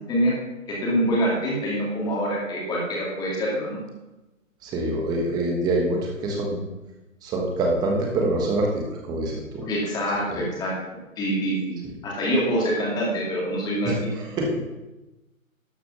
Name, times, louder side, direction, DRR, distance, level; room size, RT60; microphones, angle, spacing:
voice 1, 0.7-3.8 9.6-10.7 11.2-11.8 12.0-13.9, equal, 10° left, -4 dB, 2.5 m, -25 dB
voice 2, 4.6-6.6 7.2-9.7 10.3-10.4 13.8-13.9 14.3-14.6, right 1 dB, 10° right, 0 dB, 1.3 m, -25 dB
12.5 x 6.7 x 6.1 m, 1.0 s
figure-of-eight pair, 145°, 42 cm